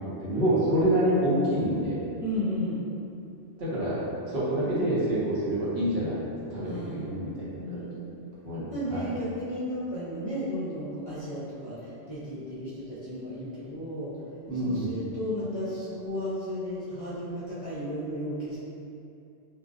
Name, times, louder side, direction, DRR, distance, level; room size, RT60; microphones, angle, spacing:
voice 1, 0.2-2.0 3.6-4.0 4.3-6.2 6.5-7.8 8.4-9.0 14.5-14.9, right 1 dB, 60° right, -9 dB, 0.9 m, -27 dB
voice 2, 2.2-2.8 6.6-7.1 7.6-8.1 8.7-14.1 14.6-18.6, equal, 35° left, -11 dB, 0.6 m, -34 dB
2.6 x 2.0 x 2.4 m, 2.6 s
omnidirectional pair, 1.2 m